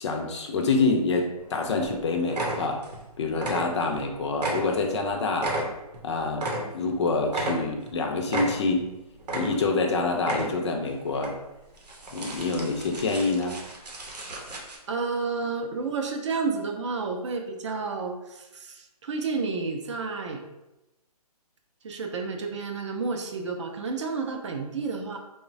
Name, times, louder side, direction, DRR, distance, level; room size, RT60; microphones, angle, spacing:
voice 1, 0.0-2.8 3.2-5.5 6.0-8.9 9.3-11.4 12.1-13.6, left 3 dB, 45° left, 3 dB, 0.4 m, -26 dB
sound 1, 1.4-1.5 1.8-2.0 2.3-3.0 3.3-4.0 4.3-7.0 7.3-7.9 8.3-8.9 9.2-9.8 10.2-10.7 11.1-11.3 11.8-14.8, right 2 dB, 85° right, 0.7 m, -33 dB
voice 2, 14.9-20.4 21.8-25.2, right 4 dB, 50° right, 3 dB, 0.4 m, -31 dB
3.0 x 2.1 x 2.5 m, 0.98 s
hypercardioid pair, 150°, 20 cm